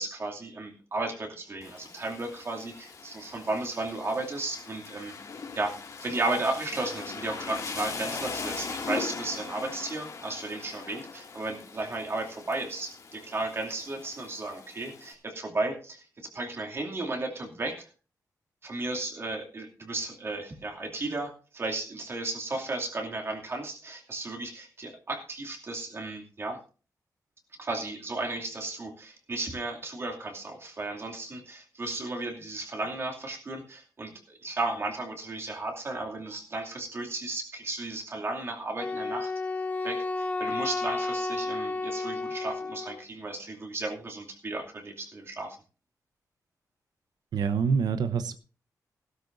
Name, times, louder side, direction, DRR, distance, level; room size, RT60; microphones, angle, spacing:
voice 1, 0.0-5.2 5.5-17.9 18.6-26.6 27.6-34.1 34.4-39.3 39.8-45.6, right 2 dB, 40° right, 1 dB, 2.6 m, -34 dB
Rain, 1.6-15.1, left 4 dB, 55° left, 2.4 m, -40 dB
Wind instrument woodwind instrument, 38.8-43.0, left 3 dB, 20° left, 0.6 m, -32 dB
voice 2, 47.3-48.3, right 6 dB, 85° right, 10 dB, 0.9 m, -26 dB
16.5 x 12.5 x 2.6 m, 0.36 s
wide cardioid pair, 145°, 7 cm